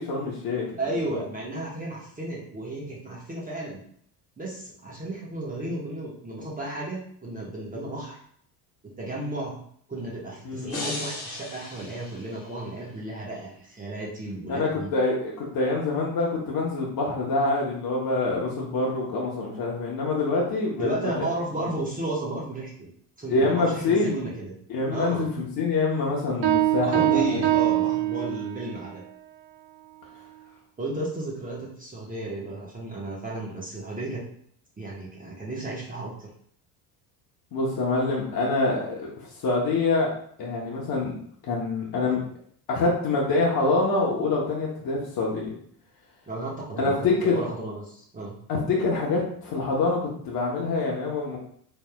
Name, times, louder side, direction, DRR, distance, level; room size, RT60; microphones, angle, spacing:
voice 1, 0.0-0.7 10.4-10.7 14.5-21.3 21.6-21.7 23.3-24.2 24.7-27.4 37.5-39.1 39.4-40.1 40.4-41.1 41.4-42.2 42.7-45.5 46.8-47.4 48.5-51.4, left 3 dB, 50° left, -3 dB, 1.0 m, -25 dB
voice 2, 0.8-3.8 4.4-8.2 8.8-9.6 9.9-14.9 20.8-22.9 23.2-24.5 24.9-25.3 26.8-29.0 30.8-34.2 34.8-36.3 46.3-47.0 47.2-48.4, right 1 dB, 20° right, -5 dB, 1.1 m, -33 dB
sound 1, 10.7-12.8, left 2 dB, 35° left, 1.4 m, -37 dB
Piano, 26.4-28.8, right 14 dB, 55° right, 0.9 m, -23 dB
4.3 x 3.4 x 2.3 m, 0.63 s
cardioid pair, 100°, 44 cm